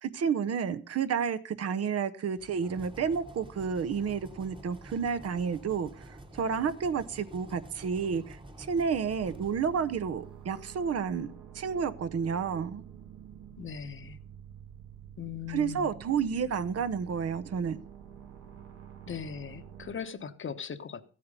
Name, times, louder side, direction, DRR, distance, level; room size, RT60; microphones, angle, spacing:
voice 1, 0.0-12.8 15.5-17.8, right 6 dB, 55° right, 12 dB, 0.9 m, -31 dB
sound 1, 2.4-10.3, right 1 dB, 15° right, 1.4 m, -49 dB
sound 2, 9.2-20.0, right 9 dB, 80° right, 1.9 m, -48 dB
voice 2, 13.6-14.2 15.2-15.9 19.1-21.0, left 7 dB, 40° left, 11 dB, 1.1 m, -39 dB
14.5 x 8.6 x 5.4 m, 0.40 s
cardioid pair, 90°, 30 cm